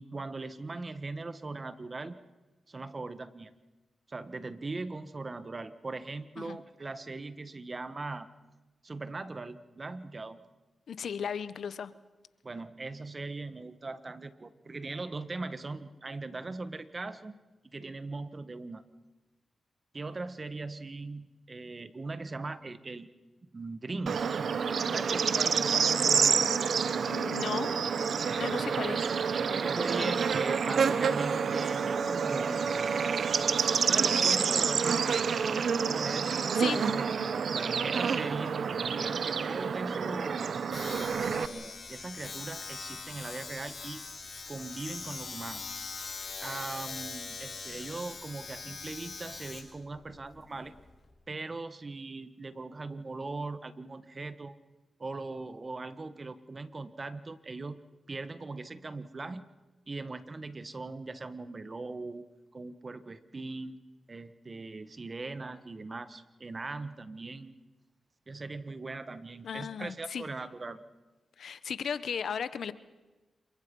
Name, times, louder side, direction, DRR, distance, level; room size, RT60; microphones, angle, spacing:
voice 1, 0.0-2.2 2.7-3.5 4.1-8.3 8.8-10.4 12.4-17.4 17.7-18.8 19.9-23.1 23.5-24.2 24.9-26.5 29.5-32.9 33.8-35.4 35.8-37.1 37.5-38.6 38.9-44.0 44.5-45.6 46.4-50.7 51.3-54.6 55.0-57.8 58.1-59.4 59.9-62.3 62.5-63.8 64.1-67.5 68.3-70.8, right 3 dB, 40° right, 12 dB, 1.5 m, -40 dB
voice 2, 10.9-11.9 26.2-26.4 27.0-27.7 28.4-29.1 30.0-30.1 36.6-36.8 69.4-70.3 71.4-72.7, left 7 dB, 75° left, 15 dB, 1.0 m, -36 dB
Bird / Insect, 24.1-41.5, right 6 dB, 70° right, 1.0 m, -28 dB
Domestic sounds home sounds, 40.7-51.1, left 4 dB, 55° left, 5.2 m, -42 dB
28.0 x 23.5 x 5.5 m, 1.2 s
cardioid pair, 55°, 0 cm